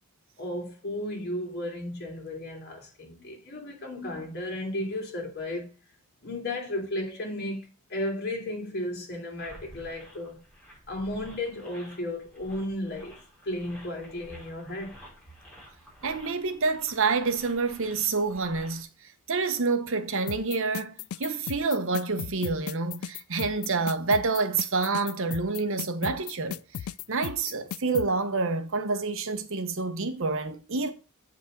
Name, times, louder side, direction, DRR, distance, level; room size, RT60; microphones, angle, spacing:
voice 1, 0.4-5.7 6.2-10.4 10.9-15.0, left 1 dB, 45° left, 2.9 m, -34 dB
sound 1, 9.4-18.8, equal, 5° left, 5.1 m, -51 dB
voice 2, 16.0-18.9 19.3-30.9, right 4 dB, 60° right, 1.0 m, -28 dB
sound 2, 20.3-28.1, left 9 dB, 65° left, 0.3 m, -36 dB
8.1 x 5.1 x 5.1 m
head